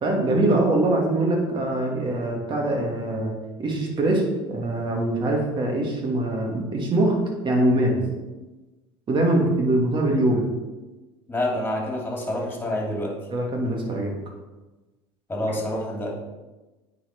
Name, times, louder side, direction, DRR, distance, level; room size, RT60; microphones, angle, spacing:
voice 1, 0.0-3.3 3.6-4.2 4.5-7.2 7.4-8.0 9.1-10.4 13.3-14.2, right 1 dB, 40° right, 0 dB, 2.4 m, -23 dB
voice 2, 11.3-13.2 15.3-16.1, left 1 dB, 15° left, -1 dB, 2.9 m, -27 dB
9.1 x 4.6 x 4.6 m, 1.1 s
supercardioid pair, 90°, 13 cm